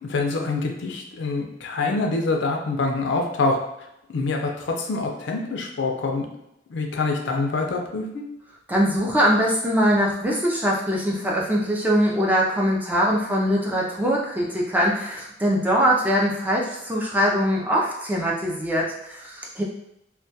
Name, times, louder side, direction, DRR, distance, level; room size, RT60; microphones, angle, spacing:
voice 1, 0.0-3.6 4.1-6.3 6.7-8.2, left 3 dB, 65° left, 2 dB, 0.4 m, -25 dB
voice 2, 8.7-19.6, equal, 10° right, -3 dB, 0.3 m, -22 dB
2.2 x 2.1 x 2.7 m, 0.83 s
head